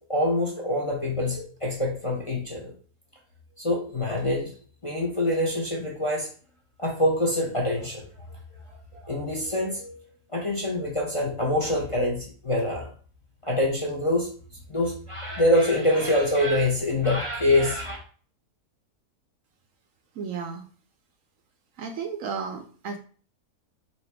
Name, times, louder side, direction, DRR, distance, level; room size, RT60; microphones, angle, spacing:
voice 1, 0.1-2.7 3.6-4.5 4.8-6.3 6.8-8.0 8.9-10.0 10.3-12.9 13.4-14.3 14.7-18.0, left 1 dB, 25° left, -1 dB, 0.8 m, -25 dB
voice 2, 20.2-20.6 21.8-23.0, right 6 dB, 70° right, 6 dB, 0.9 m, -33 dB
4.2 x 2.8 x 4.5 m, 0.42 s
omnidirectional pair, 1.6 m